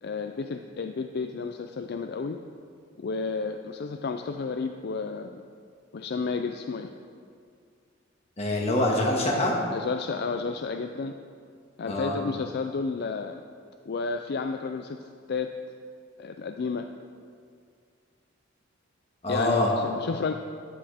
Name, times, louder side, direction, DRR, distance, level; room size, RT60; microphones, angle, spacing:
voice 1, 0.0-2.4 3.0-5.4 5.9-6.9 9.7-11.1 11.8-13.4 13.9-15.5 16.2-16.9 19.3-20.3, left 4 dB, 55° left, 6 dB, 0.4 m, -31 dB
voice 2, 8.4-9.6 11.9-12.2 19.2-19.7, left 1 dB, 30° left, -2 dB, 1.8 m, -25 dB
12.5 x 9.9 x 3.5 m, 2.2 s
head